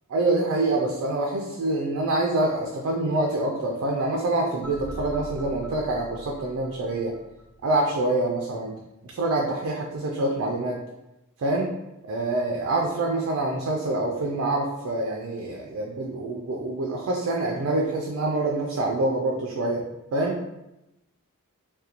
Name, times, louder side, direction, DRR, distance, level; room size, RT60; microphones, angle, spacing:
voice 1, 0.1-7.1 7.6-8.7 9.1-10.8 11.4-11.7 12.0-19.8 20.1-20.4, right 2 dB, 65° right, -1 dB, 0.3 m, -26 dB
sound 1, 4.6-7.7, equal, 5° left, 0.5 m, -41 dB
2.4 x 2.2 x 2.8 m, 0.93 s
head